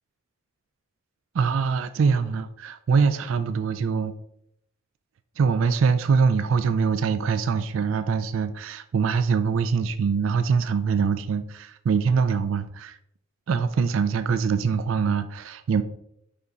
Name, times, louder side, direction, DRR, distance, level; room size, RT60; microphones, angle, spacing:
voice 1, 1.3-4.1 5.4-13.0 13.5-15.8, right 5 dB, 80° right, 11 dB, 0.4 m, -23 dB
5.5 x 4.9 x 3.9 m, 0.75 s
head